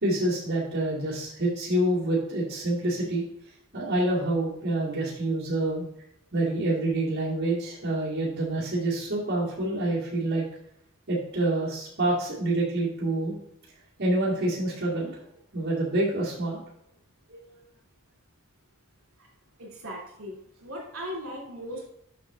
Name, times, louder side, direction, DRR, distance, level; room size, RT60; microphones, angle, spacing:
voice 1, 0.0-3.2 3.7-5.9 6.3-10.4 11.1-13.3 14.0-15.2 15.5-16.6 17.3-17.4, right 1 dB, 50° right, -8 dB, 2.3 m, -27 dB
voice 2, 19.6-21.8, equal, 75° right, -2 dB, 2.8 m, -38 dB
7.9 x 6.0 x 3.7 m, 0.76 s
head